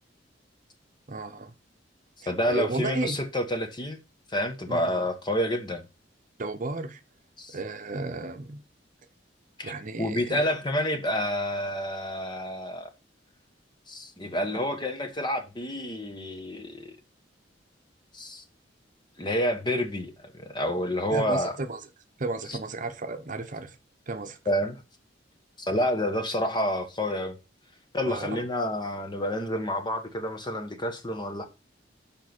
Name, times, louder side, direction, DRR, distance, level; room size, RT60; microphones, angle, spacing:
voice 1, 1.1-1.5 2.2-3.2 4.7-4.9 6.4-7.0 7.5-8.6 9.6-10.5 21.1-21.8 22.2-23.8 24.1-24.4 28.1-28.5, right 2 dB, 45° right, 0.9 m, -33 dB
voice 2, 2.3-4.0 4.3-5.9 7.4-7.6 9.6-9.7 10.0-12.9 13.9-17.0 18.1-18.4 19.2-21.5 22.5-22.6 24.5-24.8 25.6-27.3 27.9-31.4, equal, 25° left, 1.4 m, -29 dB
7.4 x 5.4 x 4.4 m
head